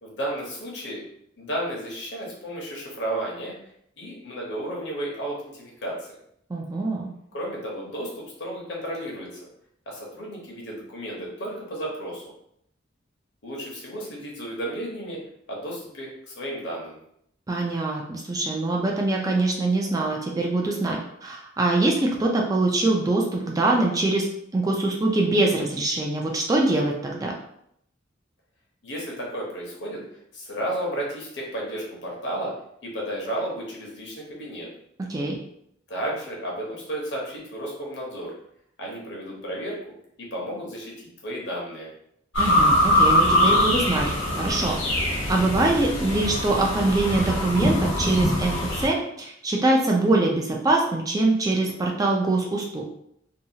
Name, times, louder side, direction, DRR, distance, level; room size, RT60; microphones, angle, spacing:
voice 1, 0.0-1.0 1.4-3.5 4.0-6.0 7.3-9.4 9.9-12.2 13.4-15.2 15.5-17.0 28.8-30.0 30.3-32.5 32.8-34.7 35.9-38.3 38.8-39.8 40.2-41.9, right 1 dB, 60° left, -3 dB, 0.9 m, -33 dB
voice 2, 6.5-7.1 17.5-24.3 24.5-27.3 35.1-35.4 42.4-44.1 44.4-44.8 45.3-52.8, right 2 dB, 20° right, -1 dB, 0.3 m, -23 dB
sound 1, 42.3-48.9, left 1 dB, 85° left, 1.0 m, -22 dB
2.7 x 2.3 x 2.7 m, 0.72 s
head